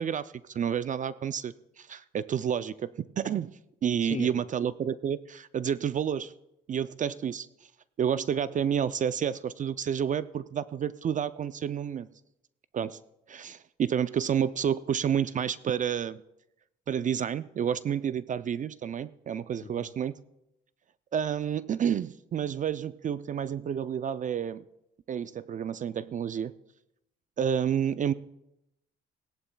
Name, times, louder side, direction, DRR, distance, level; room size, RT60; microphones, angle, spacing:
voice 1, 0.0-3.5 3.8-6.3 6.7-7.5 8.0-12.1 12.7-13.0 13.3-16.2 16.9-20.1 21.1-24.6 25.1-26.6 27.4-28.1, right 8 dB, 40° right, 15 dB, 0.4 m, -30 dB
voice 2, 4.0-4.3 19.6-19.9, left 6 dB, 35° left, 10 dB, 0.8 m, -38 dB
17.5 x 11.0 x 2.2 m, 0.84 s
cardioid pair, 90°, 20 cm